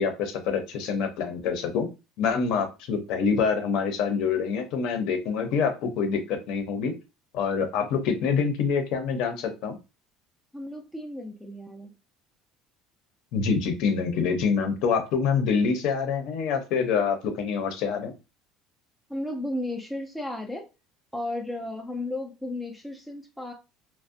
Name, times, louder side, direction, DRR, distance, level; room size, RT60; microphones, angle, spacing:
voice 1, 0.0-1.9 2.2-6.9 7.3-9.8 13.3-18.1, left 6 dB, 60° left, 6 dB, 0.6 m, -26 dB
voice 2, 10.5-11.9 19.1-20.7 21.1-23.5, left 1 dB, ahead, 1 dB, 0.3 m, -34 dB
2.5 x 2.0 x 2.6 m, 0.27 s
cardioid pair, 165°, 0 cm